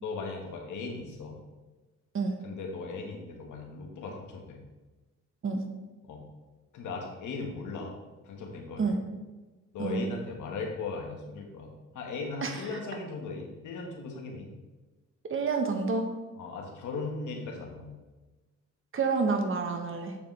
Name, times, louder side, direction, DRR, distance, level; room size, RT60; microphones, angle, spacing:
voice 1, 0.0-1.4 2.4-4.6 6.0-6.2 6.7-7.9 8.2-9.0 9.7-14.6 16.4-17.9, left 3 dB, 80° left, 1 dB, 1.9 m, -38 dB
voice 2, 15.3-16.1 18.9-20.2, right 4 dB, 45° right, 4 dB, 1.5 m, -28 dB
8.5 x 7.0 x 3.5 m, 1.2 s
cardioid pair, 90°, 30 cm